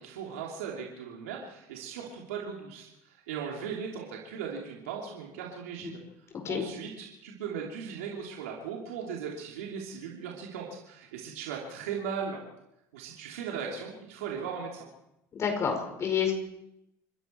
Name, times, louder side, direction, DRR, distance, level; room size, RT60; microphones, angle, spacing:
voice 1, 0.0-5.9 6.5-12.4 12.9-14.9, right 6 dB, 85° right, -2 dB, 3.1 m, -38 dB
voice 2, 15.3-16.3, left 7 dB, 40° left, 4 dB, 5.1 m, -29 dB
28.0 x 11.0 x 4.6 m, 0.83 s
supercardioid pair, 85°, 7 cm